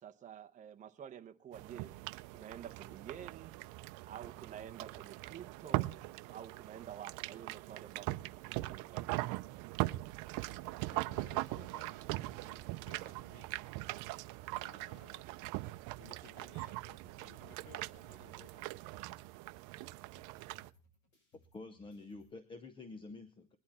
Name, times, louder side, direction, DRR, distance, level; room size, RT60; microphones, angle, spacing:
voice 1, 0.0-1.9 2.3-3.6 4.1-5.9 6.3-9.2, right 9 dB, 20° right, 0.8 m, -50 dB
sound 1, 1.5-20.7, right 20 dB, 60° right, 0.6 m, -41 dB
voice 2, 10.9-13.9 14.6-15.3 16.0-18.7, left 10 dB, 65° left, 1.3 m, -61 dB
sound 2, 16.1-22.3, equal, 30° left, 7.1 m, -69 dB
voice 3, 21.5-23.6, left 3 dB, 15° left, 0.7 m, -49 dB
20.5 x 11.0 x 4.3 m
cardioid pair, 170°, 35 cm